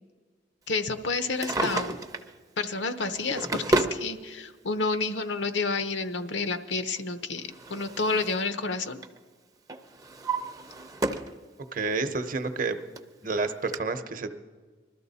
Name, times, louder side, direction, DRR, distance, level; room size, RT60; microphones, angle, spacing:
voice 1, 0.7-2.0 2.6-9.0, left 3 dB, 75° left, 10 dB, 0.8 m, -30 dB
Drawer open or close, 1.2-2.3 3.1-4.0 5.1-5.2 7.0-8.5 8.8-9.2 9.7-11.4 11.8-11.9 12.6-12.7 13.0-13.1 13.7-13.8, right 2 dB, 20° right, 0.6 m, -31 dB
voice 2, 11.7-12.8 13.2-14.3, right 3 dB, 45° right, 9 dB, 0.8 m, -29 dB
21.0 x 13.0 x 4.1 m, 1.4 s
head